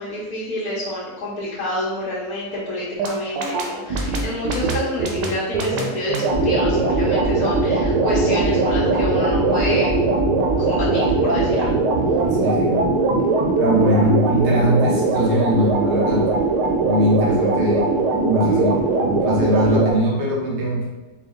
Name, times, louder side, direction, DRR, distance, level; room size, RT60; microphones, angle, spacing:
voice 1, 0.0-9.9 10.6-11.7, left 1 dB, 65° left, -8 dB, 1.3 m, -28 dB
sound 1, 3.0-19.9, right 3 dB, 90° right, 1.3 m, -20 dB
voice 2, 12.3-12.8 13.6-16.3 16.8-17.9 18.2-20.9, equal, 35° right, -4 dB, 0.9 m, -21 dB
4.4 x 2.3 x 3.5 m, 1.1 s
omnidirectional pair, 1.8 m